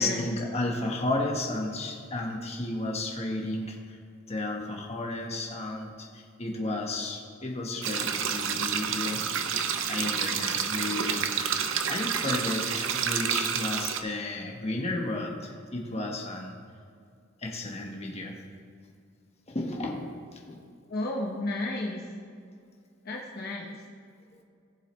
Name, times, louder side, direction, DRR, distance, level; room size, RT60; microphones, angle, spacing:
voice 1, 0.0-4.0 4.3-9.2 9.9-11.6 11.9-16.6 17.4-18.4 19.5-20.6, left 2 dB, 30° left, 0 dB, 1.3 m, -33 dB
sound 1, 7.8-14.0, right 7 dB, 70° right, 0.7 m, -29 dB
voice 2, 20.9-22.0 23.0-23.8, left 1 dB, 50° left, -2 dB, 1.0 m, -32 dB
18.0 x 7.4 x 3.2 m, 2.3 s
head